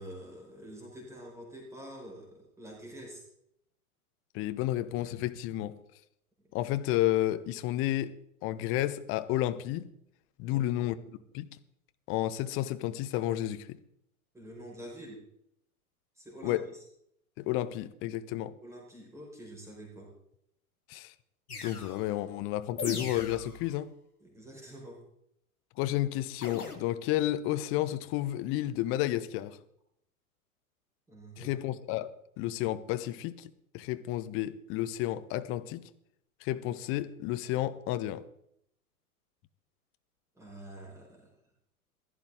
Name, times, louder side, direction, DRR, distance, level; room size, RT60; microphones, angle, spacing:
voice 1, 0.0-3.2 10.5-10.9 14.3-15.2 16.2-16.8 18.6-20.1 24.2-25.0 31.1-31.6 40.3-41.3, right 1 dB, 5° right, -2 dB, 4.6 m, -47 dB
voice 2, 4.3-5.7 6.5-8.1 8.4-9.9 10.4-11.0 11.3-11.5 12.1-13.8 16.4-16.6 17.4-18.5 20.9-21.1 21.6-23.9 25.8-29.6 31.4-32.1 32.4-35.9 36.4-38.3, left 14 dB, 30° left, 12 dB, 0.9 m, -31 dB
sound 1, 21.5-22.1 22.8-23.6 26.4-26.8, left 4 dB, 80° left, 2.1 m, -38 dB
16.0 x 13.0 x 3.8 m, 0.72 s
figure-of-eight pair, 100°, 44 cm